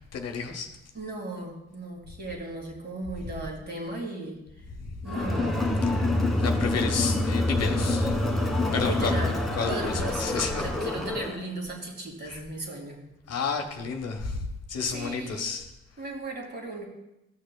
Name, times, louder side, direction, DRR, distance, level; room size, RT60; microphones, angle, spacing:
voice 1, 0.1-0.7 4.7-4.9 6.4-8.2 8.7-9.1 9.5-10.7 12.3-12.4 13.3-15.7, left 5 dB, 55° left, 4 dB, 1.0 m, -31 dB
voice 2, 0.9-4.7 5.0-5.6 8.6-9.4 9.7-13.0 13.2-13.3 14.9-15.5 16.0-16.9, right 2 dB, 35° right, 1 dB, 2.0 m, -37 dB
Crowd, 5.1-11.4, left 2 dB, ahead, 1.3 m, -26 dB
13.0 x 6.5 x 2.2 m, 0.90 s
hypercardioid pair, 40°, 30 cm